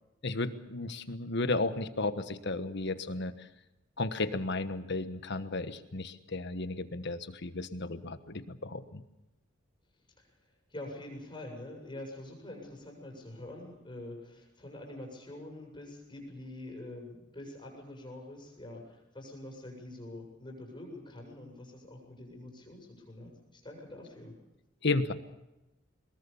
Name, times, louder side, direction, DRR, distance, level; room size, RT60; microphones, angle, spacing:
voice 1, 0.2-3.5 4.0-9.0 24.8-25.1, left 3 dB, 60° left, 11 dB, 1.3 m, -33 dB
voice 2, 10.7-24.3, left 1 dB, 25° left, 1 dB, 7.6 m, -45 dB
23.0 x 21.0 x 7.1 m, 0.95 s
head